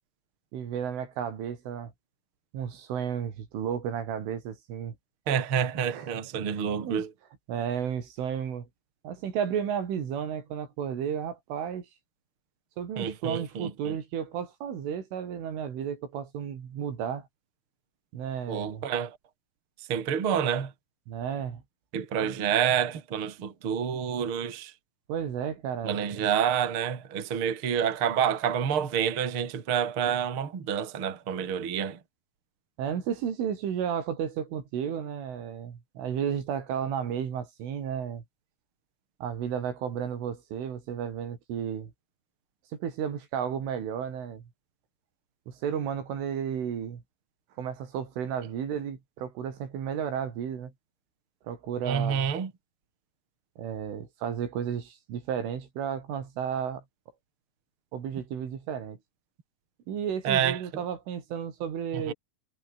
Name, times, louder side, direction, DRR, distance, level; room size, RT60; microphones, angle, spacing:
voice 1, 0.5-1.9 2.5-5.0 5.9-6.1 6.5-7.0 7.5-8.7 9.0-11.9 12.8-17.3 18.1-18.9 21.1-21.6 22.2-22.4 25.1-26.3 32.8-38.2 39.2-41.9 42.7-44.4 45.5-47.0 47.6-50.7 51.4-52.3 53.6-56.8 57.9-59.0 59.9-62.1, right 8 dB, 75° right, 6.2 m, -33 dB
voice 2, 5.3-7.1 13.0-13.9 18.5-19.2 19.9-20.7 21.9-24.7 25.8-32.0 51.9-52.5 60.2-60.6 61.9-62.1, right 8 dB, 35° right, 2.8 m, -28 dB
omnidirectional pair, 5.7 m